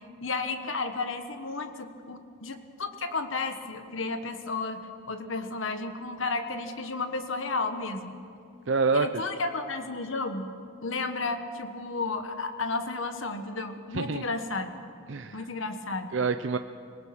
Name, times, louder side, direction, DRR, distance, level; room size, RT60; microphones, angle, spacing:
voice 1, 0.2-8.1 8.9-10.5 10.8-14.7 15.3-16.2, left 3 dB, 65° left, 8 dB, 1.4 m, -33 dB
voice 2, 8.7-9.1 13.9-14.2 15.1-15.4 16.1-16.6, right 4 dB, 60° right, 9 dB, 0.5 m, -26 dB
25.0 x 18.5 x 6.1 m, 2.5 s
head